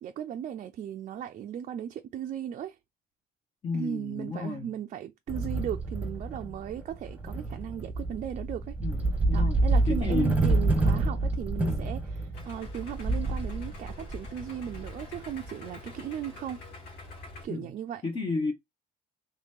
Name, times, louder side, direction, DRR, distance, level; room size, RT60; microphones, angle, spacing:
voice 1, 0.0-2.8 3.7-8.8 9.3-16.6 17.4-18.0, right 9 dB, 45° right, 0.4 m, -37 dB
voice 2, 3.6-4.7 8.8-10.3 11.6-12.0 17.5-17.7 18.0-18.5, left 3 dB, 30° left, 0.8 m, -32 dB
sound 1, 5.3-15.5, right 2 dB, 10° right, 1.0 m, -28 dB
Idling, 12.3-17.4, left 3 dB, 85° left, 1.6 m, -46 dB
3.1 x 2.9 x 3.5 m
cardioid pair, 110°, 17 cm